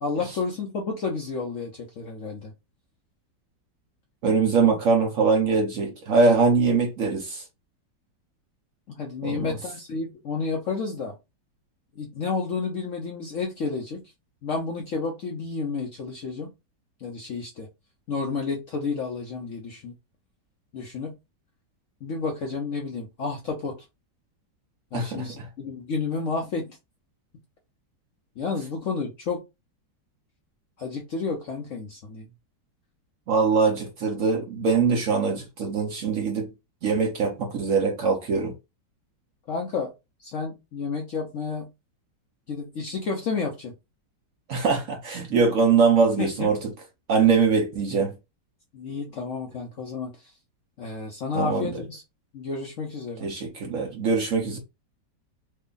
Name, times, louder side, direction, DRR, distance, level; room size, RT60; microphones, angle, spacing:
voice 1, 0.0-2.5 8.9-11.1 12.0-14.0 14.4-16.5 17.0-17.7 18.1-19.9 20.7-21.1 22.0-23.7 24.9-26.8 28.4-29.4 30.8-32.3 39.5-39.9 40.2-41.7 42.5-43.7 46.2-46.5 48.7-50.3 50.8-52.0 52.3-53.3, left 4 dB, 65° left, 0.8 m, -31 dB
voice 2, 4.2-7.4 9.2-9.6 24.9-25.5 33.3-36.5 36.8-38.5 44.5-46.6 47.1-48.1 51.3-51.8 53.2-54.6, right 5 dB, 60° right, 0.9 m, -22 dB
3.3 x 2.2 x 3.7 m
omnidirectional pair, 1.9 m